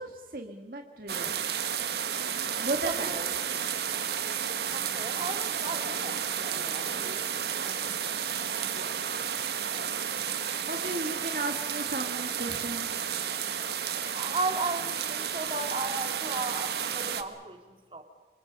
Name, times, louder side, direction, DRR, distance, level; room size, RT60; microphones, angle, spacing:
voice 1, 0.0-1.7 2.6-3.1 8.6-9.2 10.7-13.1, right 2 dB, 50° right, 3 dB, 1.9 m, -36 dB
sound 1, 1.1-17.2, right 8 dB, 70° right, 1.4 m, -32 dB
voice 2, 2.8-3.4 4.5-7.8 14.1-18.0, right 3 dB, 30° right, 5 dB, 2.5 m, -36 dB
28.0 x 25.5 x 5.5 m, 1.3 s
head